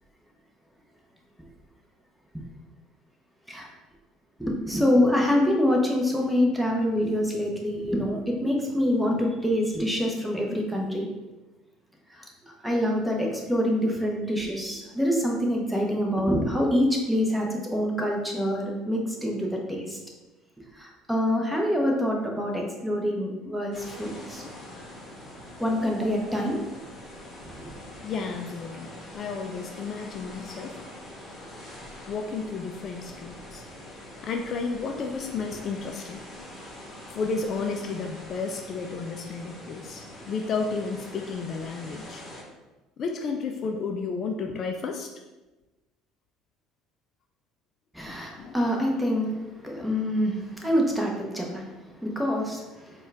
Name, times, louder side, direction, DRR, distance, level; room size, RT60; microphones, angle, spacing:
voice 1, 4.4-11.1 12.1-20.0 20.7-24.4 25.6-26.6 27.6-27.7 47.9-53.1, equal, 5° right, -1 dB, 0.9 m, -26 dB
sound 1, 23.7-42.4, left 1 dB, 20° left, 1.3 m, -44 dB
voice 2, 28.0-30.8 32.1-33.6 34.2-36.2 37.1-42.2 43.0-45.1 48.4-48.6, left 4 dB, 45° left, 4 dB, 0.3 m, -32 dB
4.3 x 2.3 x 3.4 m, 1.1 s
hypercardioid pair, 65°, 0 cm